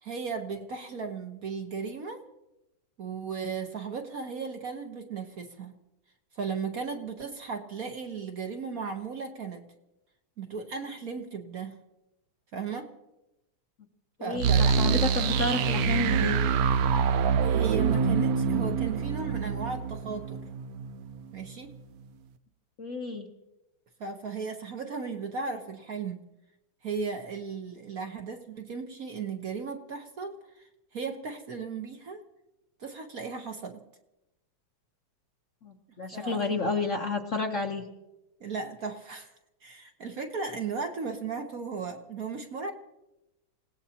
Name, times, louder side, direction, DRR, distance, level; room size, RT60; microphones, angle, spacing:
voice 1, 0.0-2.2 3.0-5.7 6.3-9.6 10.4-11.7 12.5-12.9 14.2-15.0 17.4-20.4 21.3-21.7 24.0-26.2 26.8-32.2 32.8-33.8 36.1-36.5 38.4-39.3 39.6-42.7, right 5 dB, 50° right, 4 dB, 1.3 m, -36 dB
voice 2, 14.2-16.4 22.8-23.3 35.6-37.8, left 3 dB, 45° left, 3 dB, 1.1 m, -30 dB
sound 1, 14.4-21.2, right 6 dB, 70° right, 0.8 m, -25 dB
27.5 x 17.5 x 2.9 m, 0.95 s
omnidirectional pair, 2.2 m